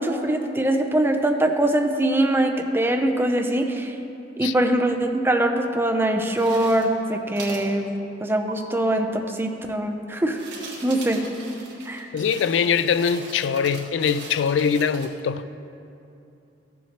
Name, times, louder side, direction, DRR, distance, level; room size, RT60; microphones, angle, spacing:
voice 1, 0.0-4.0 4.4-7.9 8.2-10.4 10.8-11.2 11.9-12.1, right 1 dB, 15° right, 4 dB, 0.5 m, -22 dB
sound 1, 6.3-7.0 7.4-7.7 8.5-8.6 10.1-15.1, right 3 dB, 85° right, 1.7 m, -40 dB
voice 2, 12.1-15.4, left 6 dB, 80° left, 13 dB, 0.3 m, -22 dB
14.0 x 7.3 x 2.9 m, 2.7 s
head